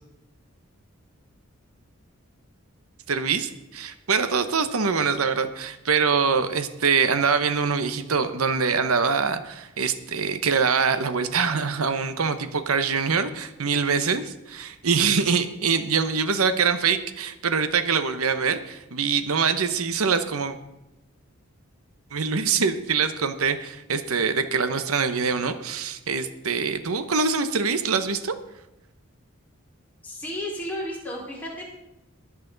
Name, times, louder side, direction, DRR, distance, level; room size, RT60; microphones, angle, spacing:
voice 1, 3.1-20.5 22.1-28.3, right 5 dB, 90° right, 10 dB, 1.0 m, -24 dB
voice 2, 30.0-31.6, left 1 dB, 10° left, -5 dB, 4.5 m, -33 dB
21.0 x 8.4 x 4.0 m, 0.92 s
head